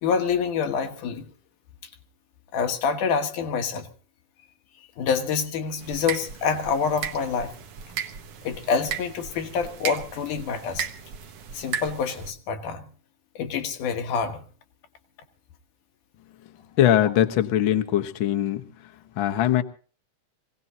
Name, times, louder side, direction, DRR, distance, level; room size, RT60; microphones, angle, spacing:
voice 1, 0.0-1.3 2.5-3.9 5.0-7.5 8.4-10.9 11.5-12.8 13.4-14.4, left 6 dB, 80° left, 2.9 m, -26 dB
sound 1, 5.8-12.3, right 8 dB, 60° right, 1.7 m, -35 dB
voice 2, 16.8-18.7 19.2-19.6, left 11 dB, 60° left, 1.3 m, -21 dB
25.0 x 17.5 x 2.8 m
omnidirectional pair, 3.6 m